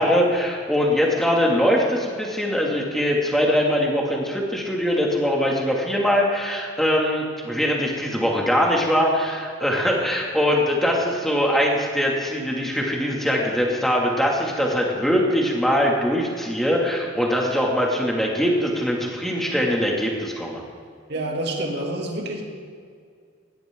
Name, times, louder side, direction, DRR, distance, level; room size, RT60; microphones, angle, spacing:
voice 1, 0.0-20.6, equal, ahead, -2 dB, 2.6 m, -22 dB
voice 2, 21.1-22.4, right 1 dB, 55° right, 0 dB, 2.8 m, -27 dB
21.0 x 17.0 x 3.9 m, 2.1 s
head